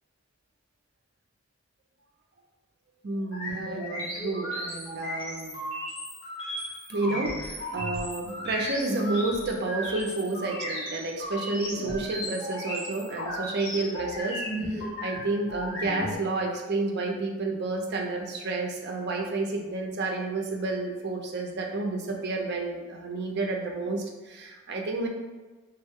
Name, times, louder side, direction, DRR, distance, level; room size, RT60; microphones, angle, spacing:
voice 1, 3.0-5.6 6.4-25.1, right 3 dB, 50° right, 1 dB, 0.5 m, -30 dB
sound 1, 3.3-16.2, left 1 dB, 75° left, 1.3 m, -35 dB
3.5 x 2.2 x 3.5 m, 1.3 s
head